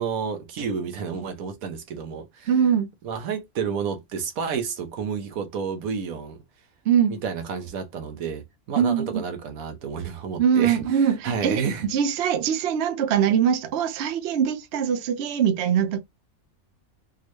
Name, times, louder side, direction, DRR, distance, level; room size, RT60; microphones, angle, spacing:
voice 1, 0.0-2.5 3.0-6.4 7.1-11.9, right 6 dB, 85° right, 1.2 m, -30 dB
voice 2, 2.5-2.9 6.9-7.1 8.8-9.1 10.4-11.6 11.9-16.0, right 8 dB, 60° right, 0.8 m, -22 dB
4.4 x 2.1 x 3.0 m
omnidirectional pair, 1.5 m